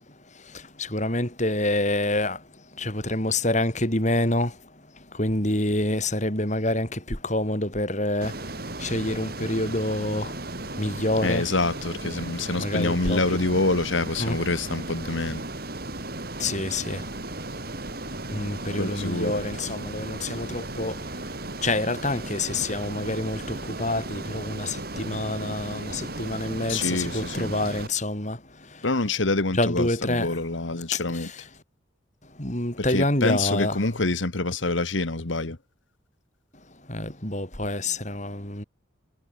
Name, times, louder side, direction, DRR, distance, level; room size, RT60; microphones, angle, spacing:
voice 1, 0.9-2.4 2.8-4.5 5.2-8.3 8.8-10.3 10.8-11.4 12.6-13.2 14.2-14.4 16.4-17.0 18.3-20.9 21.6-28.4 29.5-30.3 30.9-31.0 32.4-33.8 36.9-38.6, left 1 dB, 35° left, 7.0 m, -27 dB
Ocean, 8.2-27.9, right 2 dB, 50° right, 4.2 m, -35 dB
voice 2, 11.2-15.4 18.8-19.4 26.7-27.5 28.8-31.3 32.9-35.6, left 2 dB, 75° left, 1.8 m, -26 dB
head